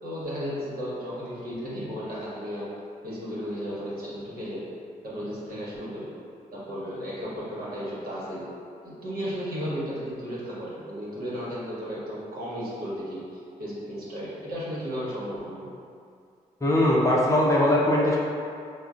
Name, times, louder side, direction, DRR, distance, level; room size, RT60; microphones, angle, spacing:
voice 1, 0.0-2.7 3.0-4.6 5.0-6.1 6.5-8.4 8.8-15.7 17.8-17.9, equal, 60° right, -8 dB, 1.1 m, -34 dB
voice 2, 16.6-18.2, left 1 dB, 20° left, -6 dB, 0.6 m, -20 dB
3.7 x 2.0 x 2.4 m, 2.3 s
supercardioid pair, 50°, 17 cm